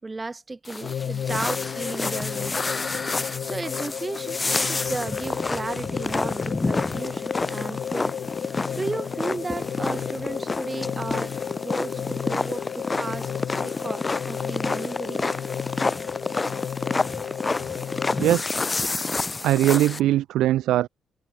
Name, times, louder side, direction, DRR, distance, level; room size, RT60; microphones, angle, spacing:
voice 1, 0.0-2.7 3.2-8.1 8.7-11.3 11.6-13.3 13.6-15.4 18.5-18.6, right 3 dB, 20° right, 2.6 m, -34 dB
sound 1, 0.6-20.0, left 3 dB, 25° left, 2.3 m, -29 dB
sound 2, 0.8-18.4, left 9 dB, 60° left, 5.2 m, -33 dB
voice 2, 18.2-18.6 19.4-20.9, right 14 dB, 85° right, 0.5 m, -21 dB
cardioid pair, 90°, 0 cm